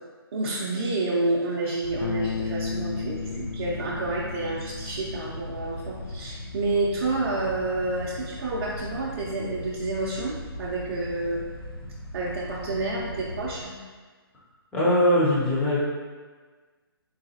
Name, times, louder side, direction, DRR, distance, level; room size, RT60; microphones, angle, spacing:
voice 1, 0.3-11.4 12.1-13.8, right 2 dB, 35° right, -7 dB, 0.6 m, -29 dB
sound 1, 1.8-13.7, left 1 dB, 60° left, 0.7 m, -39 dB
Bass guitar, 2.0-8.3, left 5 dB, 80° left, 0.4 m, -36 dB
voice 2, 14.7-15.8, left 1 dB, 5° left, -8 dB, 0.6 m, -21 dB
4.0 x 3.9 x 2.8 m, 1.4 s
hypercardioid pair, 165°, 13 cm